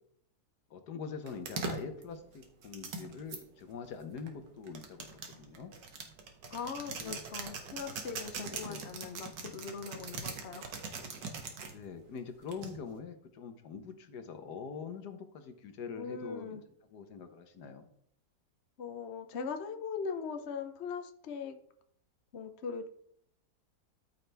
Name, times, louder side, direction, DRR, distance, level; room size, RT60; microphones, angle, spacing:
voice 1, 0.7-5.7 6.9-7.2 8.5-8.9 11.7-16.6 16.9-17.9, left 5 dB, 70° left, 8 dB, 1.5 m, -44 dB
sound 1, 1.3-3.4 4.2-11.8 12.5-13.0, right 4 dB, 85° right, 2.0 m, -41 dB
voice 2, 6.5-10.7 16.0-16.6 18.8-21.6 22.3-22.9, left 6 dB, 50° left, 7 dB, 0.9 m, -40 dB
13.5 x 5.8 x 3.4 m, 0.68 s
omnidirectional pair, 1.9 m